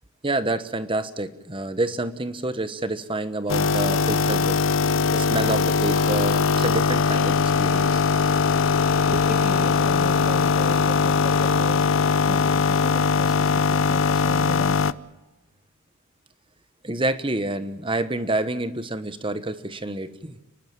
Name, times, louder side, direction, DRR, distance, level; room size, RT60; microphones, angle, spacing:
voice 1, 0.2-4.6 5.1-8.0 9.1-9.3 16.8-20.4, right 2 dB, 25° right, 12 dB, 1.2 m, -28 dB
sound 1, 3.5-14.9, left 5 dB, 60° left, 0.6 m, -21 dB
voice 2, 9.3-11.8 12.3-15.0, equal, ahead, 3 dB, 2.5 m, -37 dB
30.0 x 12.0 x 8.8 m, 1.1 s
head